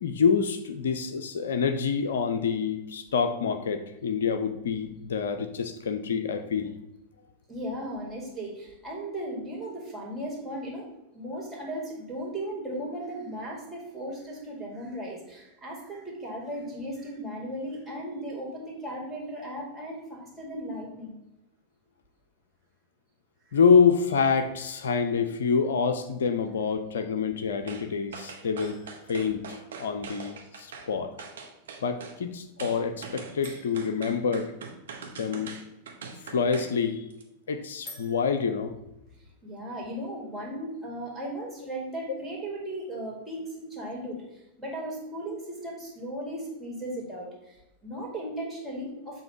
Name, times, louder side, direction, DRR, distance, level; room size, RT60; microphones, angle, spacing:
voice 1, 0.0-6.7 23.5-28.8 29.1-31.1 31.8-34.5 35.2-35.6 36.2-37.1 37.5-38.8, left 6 dB, 65° left, 9 dB, 0.4 m, -26 dB
voice 2, 7.5-10.8 11.1-21.2 39.4-44.2 44.6-49.2, right 1 dB, 10° right, -4 dB, 2.3 m, -36 dB
sound 1, 27.7-27.9 28.1-30.9 31.2-32.2 32.6-36.7 37.1-37.2, right 5 dB, 65° right, 0.9 m, -42 dB
sound 2, 28.6-30.5 33.4-35.2 37.8-38.7, left 3 dB, 30° left, 1.7 m, -51 dB
7.0 x 2.8 x 5.8 m, 0.91 s
figure-of-eight pair, 90°, 0 cm